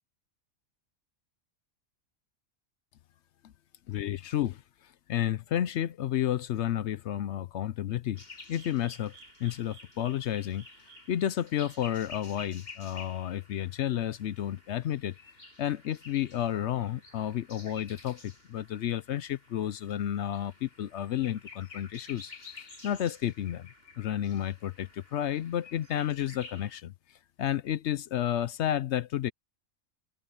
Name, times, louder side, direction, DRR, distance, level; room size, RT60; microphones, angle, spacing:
voice 1, 3.9-4.6 5.1-8.2 8.5-9.1 9.4-10.6 11.1-15.2 15.6-23.7 24.0-26.9 27.4-29.3, left 11 dB, 65° left, 0.8 m, -31 dB
sound 1, 8.1-26.8, left 4 dB, 45° left, 7.2 m, -51 dB
open air
omnidirectional pair, 1.4 m